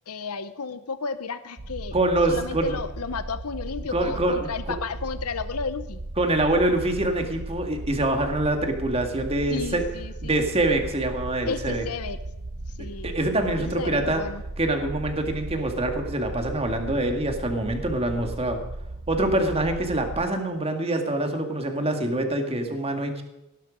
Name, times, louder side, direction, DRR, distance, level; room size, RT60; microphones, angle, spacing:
voice 1, 0.1-2.0 2.3-6.0 9.5-10.4 11.5-12.2 12.8-13.1 13.4-14.4, left 5 dB, 90° left, 12 dB, 0.9 m, -33 dB
sound 1, 1.6-20.3, right 2 dB, 50° right, 0.9 m, -36 dB
voice 2, 1.9-2.8 3.9-4.7 6.2-9.8 10.2-11.8 12.8-14.2 14.6-18.6 19.1-23.2, right 1 dB, 25° right, 4 dB, 2.0 m, -25 dB
17.5 x 11.5 x 5.1 m, 0.94 s
head